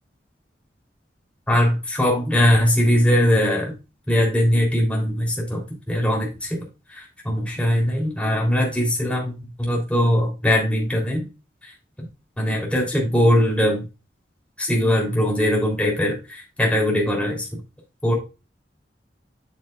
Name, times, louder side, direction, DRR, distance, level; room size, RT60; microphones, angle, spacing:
voice 1, 1.5-3.7 4.1-6.6 6.9-11.2 11.6-11.7 12.4-13.8 14.6-17.5 18.0-18.1, equal, 5° left, -2 dB, 3.2 m, -21 dB
8.3 x 7.6 x 2.4 m, 0.29 s
head